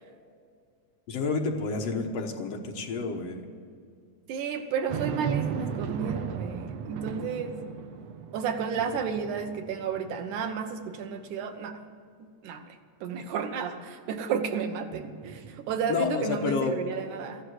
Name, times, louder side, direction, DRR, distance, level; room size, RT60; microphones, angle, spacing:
voice 1, 1.1-3.4 15.9-16.8, left 4 dB, 65° left, 3 dB, 2.1 m, -29 dB
voice 2, 4.3-7.6 8.3-11.8 12.4-12.7 13.0-17.4, right 6 dB, 85° right, 6 dB, 2.6 m, -32 dB
sound 1, 4.9-10.4 10.9-11.0 14.9-16.0, right 7 dB, 65° right, 1.9 m, -36 dB
14.5 x 11.5 x 7.9 m, 2.2 s
omnidirectional pair, 3.4 m